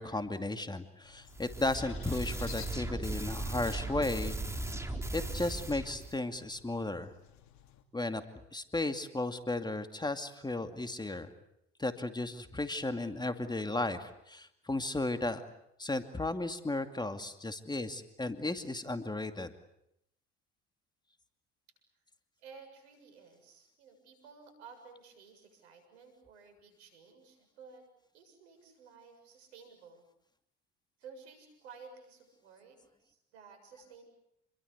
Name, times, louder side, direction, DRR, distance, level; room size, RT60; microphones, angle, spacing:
voice 1, 0.0-4.4 4.7-4.8 5.1-7.1 7.9-8.2 8.5-11.3 11.8-15.4 15.8-19.5, left 2 dB, 15° left, 8 dB, 2.4 m, -35 dB
sound 1, 1.0-7.8, left 9 dB, 60° left, 3.0 m, -56 dB
sound 2, 1.3-6.2, right 2 dB, 10° right, 4.0 m, -37 dB
voice 2, 22.4-27.9 28.1-30.1 31.0-34.0, right 5 dB, 85° right, 8 dB, 7.2 m, -54 dB
28.5 x 22.5 x 8.2 m, 0.78 s
hypercardioid pair, 70°, 32 cm